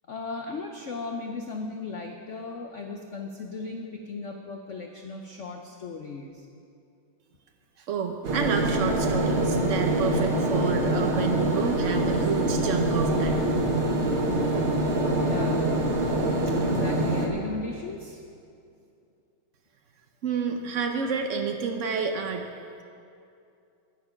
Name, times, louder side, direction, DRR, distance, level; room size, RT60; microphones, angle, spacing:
voice 1, 0.1-6.5 15.2-15.8 16.5-18.2, left 3 dB, 80° left, 3 dB, 0.6 m, -37 dB
voice 2, 7.8-13.4 20.2-22.5, right 6 dB, 80° right, 4 dB, 0.6 m, -29 dB
sound 1, 8.2-17.3, right 1 dB, 40° right, 1.2 m, -25 dB
20.0 x 6.8 x 5.8 m, 2.6 s
omnidirectional pair, 2.3 m